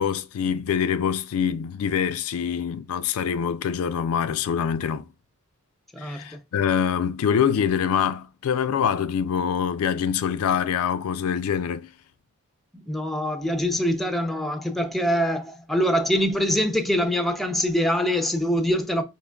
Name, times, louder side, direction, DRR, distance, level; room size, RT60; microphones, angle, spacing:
voice 1, 0.0-5.0 6.0-11.9, left 7 dB, 75° left, 0.4 m, -25 dB
voice 2, 5.9-6.4 12.9-19.0, equal, ahead, 0.4 m, -24 dB
4.4 x 3.6 x 2.2 m
head